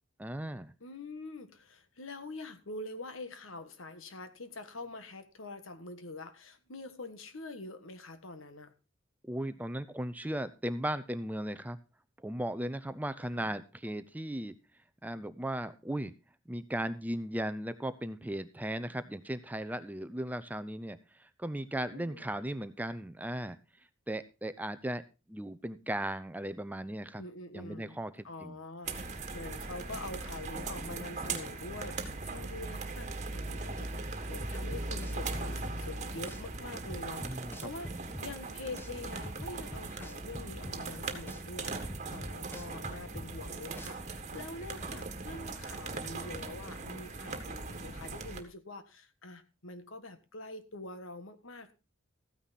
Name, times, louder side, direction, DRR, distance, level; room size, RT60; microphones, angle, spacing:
voice 1, 0.2-0.7 9.2-11.8 12.2-14.5 15.0-16.1 16.5-23.6 24.1-25.0 25.3-27.2 27.5-28.6 37.2-37.5 37.8-38.0, right 1 dB, 10° right, 0.6 m, -37 dB
voice 2, 0.8-8.7 13.3-13.5 21.8-22.3 27.2-28.0 28.2-51.7, left 2 dB, 70° left, 1.4 m, -45 dB
sound 1, 28.8-48.4, right 3 dB, 35° right, 1.6 m, -39 dB
sound 2, 34.4-35.8 36.3-36.4 36.9-38.3 38.8-38.9 39.2-40.8 41.3-41.4 41.9-43.3 43.8-43.9, equal, 10° left, 1.3 m, -44 dB
14.5 x 9.4 x 4.1 m
head